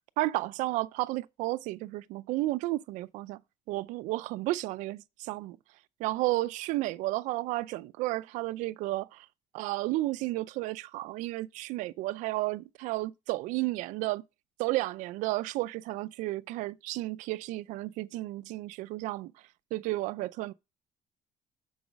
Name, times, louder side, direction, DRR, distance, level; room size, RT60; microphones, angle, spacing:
voice 1, 0.2-3.4 3.7-5.6 6.0-9.3 9.5-14.2 14.6-19.3 19.7-20.5, right 18 dB, 90° right, 0.4 m, -32 dB
7.1 x 4.7 x 5.1 m
cardioid pair, 135°, 13 cm